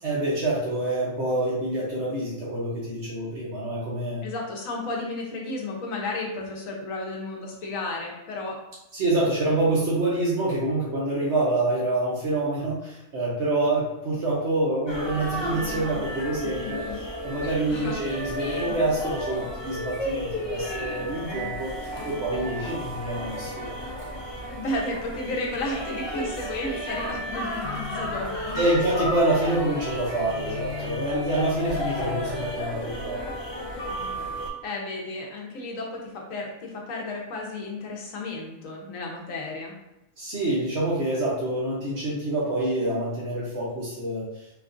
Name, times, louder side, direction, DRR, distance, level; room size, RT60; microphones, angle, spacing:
voice 1, 0.0-4.2 8.9-21.7 22.0-23.7 28.5-33.2 40.2-44.3, right 2 dB, 60° right, -6 dB, 1.0 m, -26 dB
voice 2, 4.2-8.6 17.7-18.0 24.5-28.6 34.6-39.7, left 2 dB, 80° left, 0 dB, 1.1 m, -33 dB
sound 1, 14.9-34.5, left 1 dB, 45° left, 0.3 m, -33 dB
3.5 x 2.4 x 2.5 m, 0.90 s
omnidirectional pair, 1.4 m